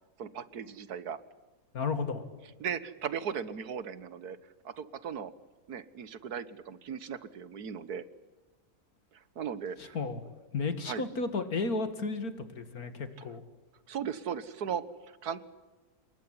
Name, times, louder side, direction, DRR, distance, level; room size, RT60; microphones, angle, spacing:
voice 1, 0.2-1.2 2.6-4.4 4.6-5.3 5.7-8.1 9.1-10.0 10.9-11.1 13.9-15.4, right 7 dB, 90° right, 15 dB, 1.8 m, -37 dB
voice 2, 1.7-2.2 9.8-10.2 10.5-13.4, left 4 dB, 75° left, 10 dB, 2.7 m, -33 dB
27.0 x 22.5 x 9.8 m, 1.2 s
omnidirectional pair, 1.6 m